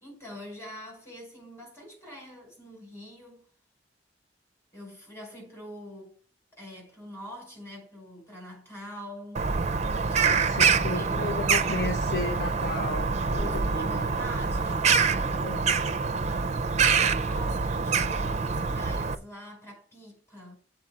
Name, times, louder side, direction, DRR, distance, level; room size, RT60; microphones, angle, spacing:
voice 1, 0.0-3.5 4.7-6.2 6.6-9.5 10.0-11.7 13.4-16.0 16.6-20.6, equal, 15° left, 5.1 m, -44 dB
Bird vocalization bird call bird song, 9.4-19.2, right 5 dB, 40° right, 0.5 m, -25 dB
voice 2, 10.1-14.1 15.4-15.6, left 3 dB, 60° left, 1.0 m, -34 dB
7.7 x 4.6 x 7.1 m
head